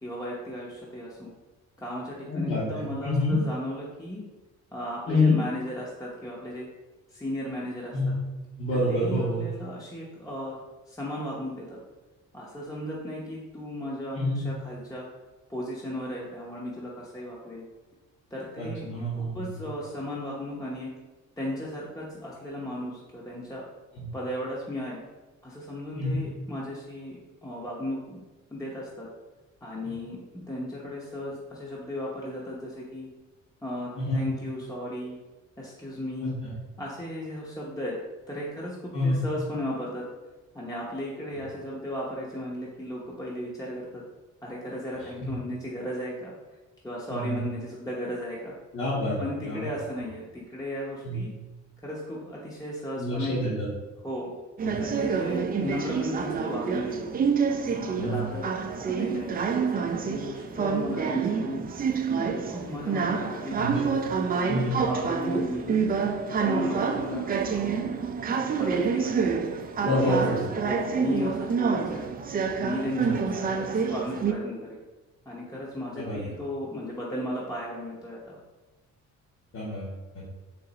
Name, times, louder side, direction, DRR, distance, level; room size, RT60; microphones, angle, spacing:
voice 1, 0.0-1.3 1.8-4.2 4.7-6.7 7.1-8.0 8.9-11.8 12.3-15.1 15.5-17.6 18.3-20.9 21.4-23.6 24.1-25.0 25.4-28.2 28.5-29.1 29.6-30.2 30.5-33.1 33.6-35.2 35.6-36.3 36.8-38.0 38.3-40.1 40.5-44.0 44.4-46.3 46.8-48.5 49.2-51.3 51.8-53.4 54.0-54.3 54.8-57.0 57.5-58.5 58.9-59.3 59.9-61.7 62.1-63.8 64.3-65.9 66.4-67.8 68.3-69.3 69.8-70.4 70.6-72.1 72.6-74.8 75.3-78.4, left 1 dB, 10° left, -4 dB, 0.8 m, -35 dB
voice 2, 2.3-3.4 5.1-5.4 7.9-8.1 8.6-9.4 14.1-14.4 18.6-19.5 24.0-24.1 26.0-26.2 34.0-34.2 36.2-36.3 38.9-39.2 47.1-47.4 48.7-49.2 49.4-49.7 51.0-51.2 53.0-53.7 57.9-58.2 63.6-63.8 64.5-64.8 69.8-70.4 73.0-73.1 75.9-76.2 79.5-79.9, left 1 dB, 45° left, -8 dB, 1.1 m, -27 dB
sound 1, 54.6-74.3, right 5 dB, 30° right, 0.4 m, -28 dB
3.9 x 2.6 x 4.0 m, 1.1 s
cardioid pair, 90°, 30 cm